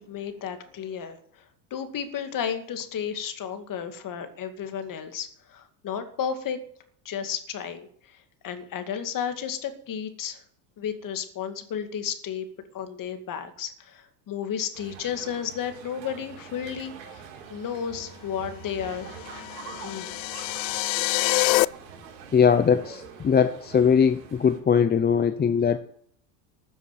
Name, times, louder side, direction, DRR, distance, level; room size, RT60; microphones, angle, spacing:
voice 1, 0.0-1.4 1.7-6.6 7.0-8.2 8.4-10.4 10.8-12.5 12.7-17.2 17.5-19.1 19.8-20.2, left 8 dB, 40° left, 8 dB, 2.3 m, -33 dB
sound 1, 14.7-24.6, right 7 dB, 80° right, 4.2 m, -45 dB
sound 2, 19.1-21.6, left 22 dB, 80° left, 0.6 m, -25 dB
voice 2, 22.3-25.8, left 7 dB, 20° left, 10 dB, 0.8 m, -21 dB
14.0 x 7.1 x 9.1 m, 0.64 s
supercardioid pair, 100°, 50 cm